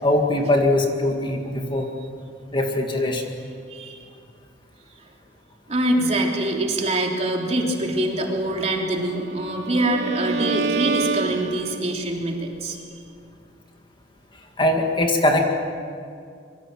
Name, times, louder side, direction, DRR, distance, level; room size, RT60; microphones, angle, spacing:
voice 1, 0.0-1.9 2.5-3.4 14.6-15.4, left 1 dB, 25° left, 2 dB, 2.1 m, -21 dB
voice 2, 3.7-4.1 5.7-12.8, right 1 dB, 35° right, 0 dB, 3.3 m, -24 dB
Bowed string instrument, 9.0-12.1, right 5 dB, 65° right, 1.0 m, -28 dB
26.0 x 23.5 x 7.7 m, 2.3 s
head